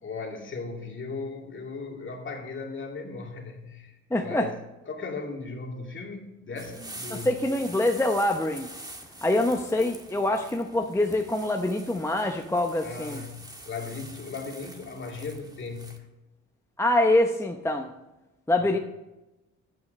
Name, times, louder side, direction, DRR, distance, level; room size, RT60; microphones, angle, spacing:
voice 1, 0.0-4.6 4.9-7.3 12.8-16.1 18.6-18.8, left 4 dB, 40° left, 0 dB, 2.6 m, -37 dB
voice 2, 4.1-4.5 7.1-8.7 9.2-13.2 16.8-17.9 18.5-18.8, left 1 dB, 10° left, 3 dB, 0.8 m, -25 dB
sound 1, 6.6-16.0, right 1 dB, 15° right, 1.6 m, -45 dB
10.5 x 9.0 x 5.3 m, 1.0 s
cardioid pair, 90°, 30 cm